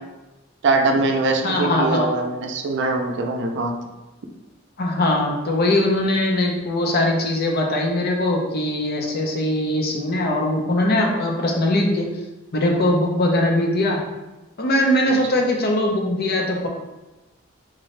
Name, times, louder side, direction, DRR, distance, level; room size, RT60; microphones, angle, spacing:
voice 1, 0.6-3.7, right 3 dB, 60° right, 3 dB, 0.4 m, -22 dB
voice 2, 1.4-2.1 4.8-12.1 12.5-14.0 14.6-16.7, left 1 dB, 50° left, 0 dB, 0.7 m, -21 dB
3.9 x 2.6 x 3.2 m, 1.1 s
head